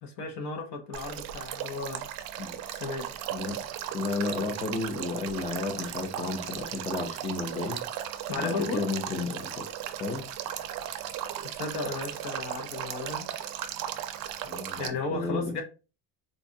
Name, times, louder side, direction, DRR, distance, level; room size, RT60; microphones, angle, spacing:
voice 1, 0.0-2.1 2.7-3.1 8.3-8.8 11.5-13.3 14.8-15.6, left 3 dB, 65° left, 0.8 m, -34 dB
Male speech man speaking / Stream / Trickle dribble, 0.9-14.9, right 10 dB, 60° right, 0.5 m, -36 dB
voice 2, 3.9-7.8 8.3-9.7 10.0-10.3 14.4-15.6, left 3 dB, 20° left, 0.4 m, -33 dB
3.9 x 2.3 x 2.6 m
cardioid pair, 170°, 40 cm